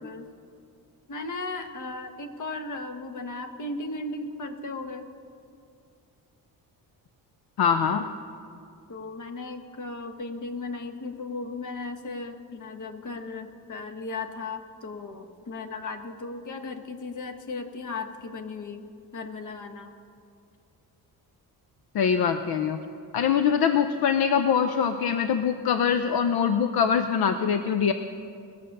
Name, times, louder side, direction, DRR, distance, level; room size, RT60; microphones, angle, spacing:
voice 1, 1.1-5.1 8.9-18.8 19.1-19.9, left 3 dB, 50° left, 6 dB, 1.2 m, -36 dB
voice 2, 7.6-8.1 21.9-22.8 23.1-27.9, left 7 dB, 70° left, 8 dB, 0.7 m, -23 dB
20.0 x 6.8 x 6.6 m, 2.4 s
cardioid pair, 120°, 38 cm